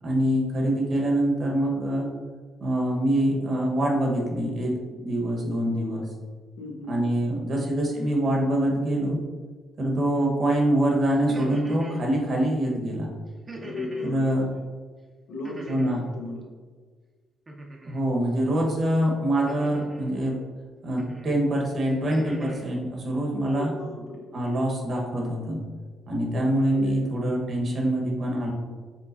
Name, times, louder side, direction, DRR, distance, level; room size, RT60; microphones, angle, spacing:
voice 1, 0.0-2.1 2.6-6.1 6.9-9.2 9.8-13.1 14.1-14.5 15.7-16.0 17.8-20.4 20.8-23.7 24.3-25.6 26.1-28.5, right 1 dB, 50° right, -1 dB, 1.1 m, -25 dB
voice 2, 6.6-6.9 13.6-14.2 15.3-15.9 16.2-16.4 23.6-24.2 26.3-26.4 26.7-27.1, left 2 dB, 80° left, 0 dB, 0.9 m, -35 dB
sound 1, 11.1-12.0 13.5-14.2 15.4-16.1 17.5-18.0 19.5-20.1 21.0-21.3 21.8-22.7, right 2 dB, 30° right, 0.7 m, -41 dB
5.4 x 3.7 x 2.6 m, 1.5 s
cardioid pair, 90°, 0 cm